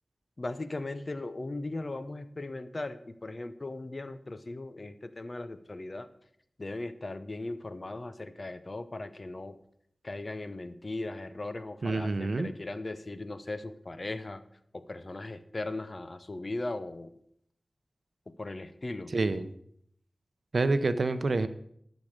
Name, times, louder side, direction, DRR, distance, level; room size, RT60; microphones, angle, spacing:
voice 1, 0.4-6.1 6.6-9.6 10.0-14.4 14.7-17.2 18.4-19.1, left 2 dB, 45° left, 11 dB, 0.8 m, -38 dB
voice 2, 11.8-12.5 19.1-19.5 20.5-21.5, right 3 dB, 65° right, 11 dB, 0.7 m, -27 dB
12.0 x 6.3 x 6.5 m, 0.68 s
wide cardioid pair, 80°, 0 cm